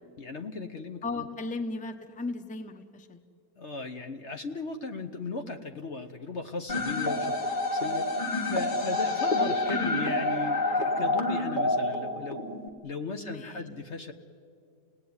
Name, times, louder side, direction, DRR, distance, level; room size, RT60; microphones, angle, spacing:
voice 1, 0.2-1.3 3.6-7.4 7.7-8.1 8.4-12.4 12.8-14.1, left 3 dB, 50° left, 6 dB, 1.2 m, -37 dB
voice 2, 1.0-3.2 9.4-10.1 13.2-13.7, left 3 dB, 5° left, 8 dB, 0.9 m, -36 dB
sound 1, 6.7-12.7, left 2 dB, 30° left, 1.7 m, -28 dB
29.5 x 18.5 x 9.6 m, 2.4 s
omnidirectional pair, 1.7 m